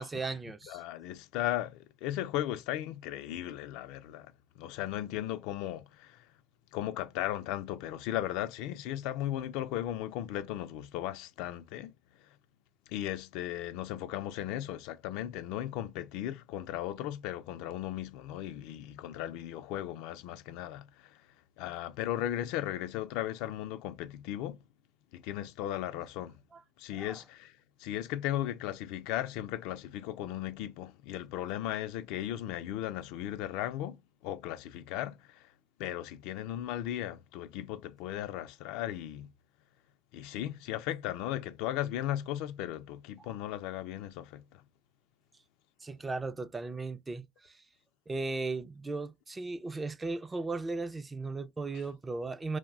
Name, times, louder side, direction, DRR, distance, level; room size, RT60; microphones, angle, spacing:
voice 1, 0.0-0.8 26.5-26.6 26.9-27.2 43.2-43.3 45.8-47.6 48.1-52.6, right 3 dB, 15° right, 0.3 m, -37 dB
voice 2, 0.7-6.3 6.7-11.9 12.9-21.2 21.6-24.6 25.1-26.4 26.8-35.5 35.8-39.3 40.1-44.6, left 12 dB, 80° left, 0.4 m, -36 dB
2.6 x 2.1 x 3.5 m
cardioid pair, 125°, 0 cm